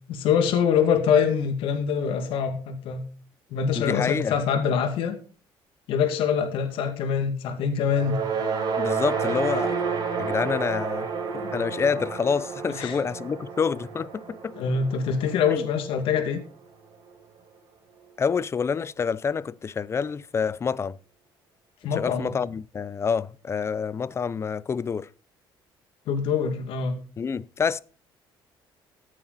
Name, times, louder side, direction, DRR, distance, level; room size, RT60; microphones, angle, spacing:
voice 1, 0.1-3.0 3.5-5.2 5.9-8.2 12.8-13.0 14.6-16.4 21.8-22.3 26.1-27.0, left 7 dB, 75° left, 2.3 m, -24 dB
voice 2, 3.7-4.4 8.8-9.8 10.2-11.1 11.3-14.6 15.5-15.6 18.2-21.0 21.9-25.1 27.2-27.8, left 6 dB, 30° left, 0.6 m, -27 dB
epic brass, 7.9-16.2, right 5 dB, 50° right, 4.5 m, -30 dB
15.0 x 9.1 x 4.2 m
cardioid pair, 120°, 9 cm